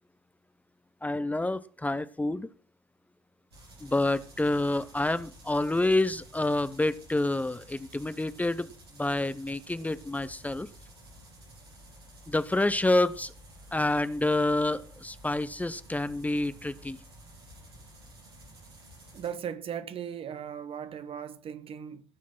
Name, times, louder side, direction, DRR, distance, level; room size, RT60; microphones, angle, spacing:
voice 1, 1.0-2.5 3.8-8.7 9.0-10.7 12.3-13.3 13.7-17.0, left 2 dB, 10° left, 0.7 m, -28 dB
sound 1, 3.5-19.3, right 1 dB, 90° right, 3.6 m, -52 dB
voice 2, 19.1-22.0, right 8 dB, 50° right, 1.1 m, -37 dB
16.5 x 6.3 x 6.0 m
figure-of-eight pair, 50°, 13 cm